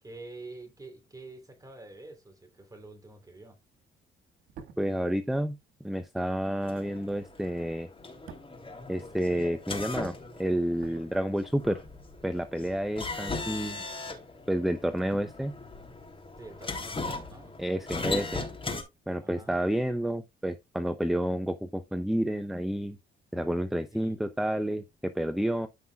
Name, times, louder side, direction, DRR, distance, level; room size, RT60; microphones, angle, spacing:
voice 1, 0.0-3.6 16.4-17.6 19.2-19.6 23.9-24.2, right 2 dB, 15° right, 3.4 m, -47 dB
sound 1, 4.4-9.7 9.9-11.8 12.0-12.2, right 6 dB, 85° right, 1.9 m, -53 dB
voice 2, 4.8-5.6 5.8-7.9 8.9-10.1 10.4-11.8 12.2-13.8 14.5-15.5 17.6-18.4 19.1-23.0 23.3-25.7, right 1 dB, ahead, 0.7 m, -30 dB
sound 2, 6.6-18.8, left 3 dB, 25° left, 3.3 m, -39 dB
14.0 x 5.4 x 2.4 m
cardioid pair, 90°, 20 cm